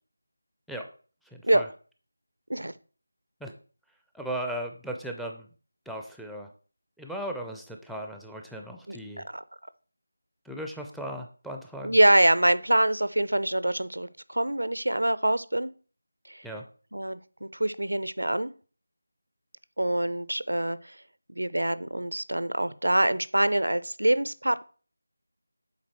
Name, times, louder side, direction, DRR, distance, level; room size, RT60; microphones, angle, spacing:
voice 1, 1.3-1.7 3.4-3.5 4.1-5.5 5.9-6.5 7.0-9.3 10.4-12.0 16.4-16.6, right 1 dB, ahead, 3 dB, 0.4 m, -37 dB
voice 2, 8.9-9.4 11.8-15.7 16.3-16.4 16.9-18.5 19.8-21.0 21.4-24.6, right 1 dB, 85° right, 16 dB, 0.5 m, -25 dB
7.3 x 4.1 x 4.5 m, 0.40 s
figure-of-eight pair, 165°, 0 cm